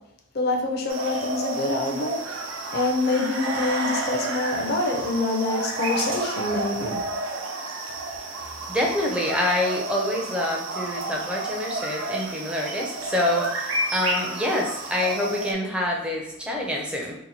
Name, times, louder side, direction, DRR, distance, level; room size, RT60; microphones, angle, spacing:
voice 1, 0.3-2.2 2.7-7.0, left 2 dB, 50° left, 2 dB, 0.5 m, -26 dB
sound 1, 0.9-15.5, right 2 dB, 75° right, 0.6 m, -31 dB
voice 2, 8.7-17.2, left 1 dB, 5° right, -1 dB, 0.5 m, -26 dB
2.9 x 2.2 x 4.1 m, 0.79 s
head